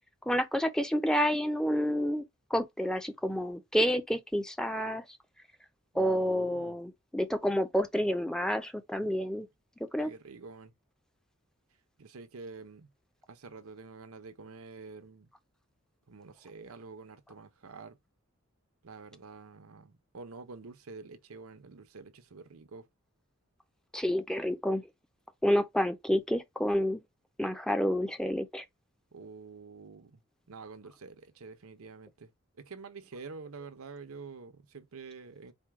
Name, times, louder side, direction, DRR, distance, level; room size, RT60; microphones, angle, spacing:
voice 1, 0.3-2.2 2.5-5.2 5.9-9.5 9.8-10.1 23.9-24.8 25.4-27.0 27.4-28.7, equal, 5° left, 0.5 m, -29 dB
voice 2, 5.9-6.7 10.0-10.7 12.0-12.9 13.3-15.3 16.1-18.0 18.8-22.9 29.1-30.2 30.5-32.3 32.6-35.5, right 4 dB, 90° right, 0.8 m, -47 dB
4.3 x 2.2 x 4.6 m
head